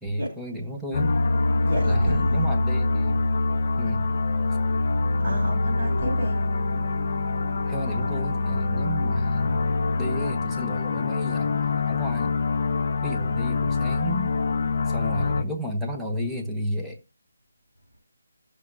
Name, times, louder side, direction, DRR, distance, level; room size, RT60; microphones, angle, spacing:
voice 1, 0.0-1.2 1.8-3.2 3.8-4.1 7.7-9.7 10.0-12.4 13.0-14.3 14.8-17.0, equal, 5° right, 1.0 m, -32 dB
sound 1, 0.9-15.4, left 3 dB, 50° left, 0.7 m, -25 dB
voice 2, 1.6-2.5 5.2-6.4, equal, 30° right, 6.3 m, -29 dB
16.0 x 6.6 x 2.7 m
figure-of-eight pair, 165°, 0 cm